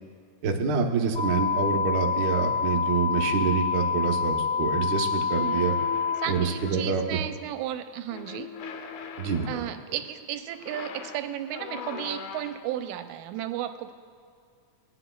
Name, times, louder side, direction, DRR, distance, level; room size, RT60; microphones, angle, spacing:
voice 1, 0.4-5.7 6.3-7.2 9.2-9.6, right 5 dB, 70° right, 0 dB, 1.1 m, -26 dB
sound 1, 1.1-6.1, left 6 dB, 25° left, 2.5 m, -27 dB
sound 2, 5.3-7.1 8.1-9.9 10.5-12.8, left 6 dB, 90° left, 2.1 m, -40 dB
voice 2, 5.4-5.7 6.2-8.5 9.5-13.9, right 11 dB, 90° right, 9 dB, 2.0 m, -34 dB
18.5 x 10.0 x 2.3 m, 2.3 s
omnidirectional pair, 3.3 m